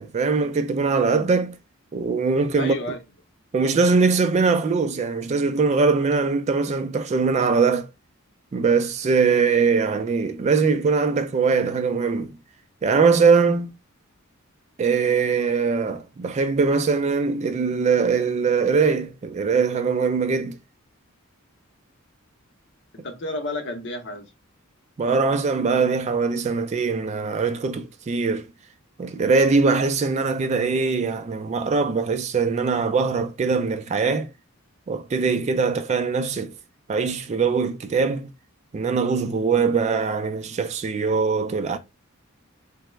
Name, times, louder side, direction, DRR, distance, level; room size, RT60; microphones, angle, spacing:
voice 1, 0.0-1.5 1.9-2.7 3.5-7.9 8.5-12.3 12.8-13.7 14.8-20.6 25.0-28.5 29.0-34.3 34.9-36.5 36.9-38.3 38.7-41.8, right 4 dB, 30° right, 0.3 m, -22 dB
voice 2, 2.6-3.0 22.9-24.3, left 2 dB, 55° left, 0.7 m, -31 dB
3.1 x 2.0 x 3.1 m
head